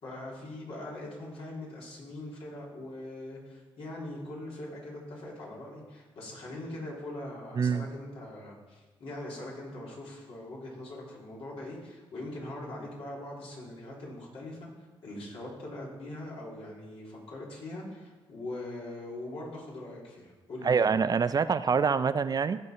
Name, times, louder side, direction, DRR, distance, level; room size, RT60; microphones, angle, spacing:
voice 1, 0.0-14.7 15.0-20.7, left 1 dB, 70° left, -4 dB, 3.4 m, -41 dB
voice 2, 20.6-22.6, right 5 dB, 40° right, 13 dB, 0.4 m, -25 dB
15.5 x 5.3 x 4.4 m, 1.2 s
cardioid pair, 75°, 10 cm